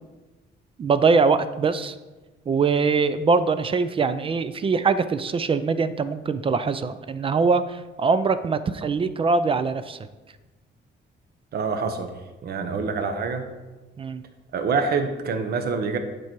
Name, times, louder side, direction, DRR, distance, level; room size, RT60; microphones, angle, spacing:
voice 1, 0.8-1.9 2.5-10.0 14.0-14.2, right 4 dB, 30° right, 12 dB, 0.4 m, -22 dB
voice 2, 11.5-12.1 12.4-13.4 14.5-16.0, right 5 dB, 55° right, 7 dB, 0.9 m, -26 dB
10.0 x 4.7 x 4.5 m, 1.2 s
cardioid pair, 145°, 20 cm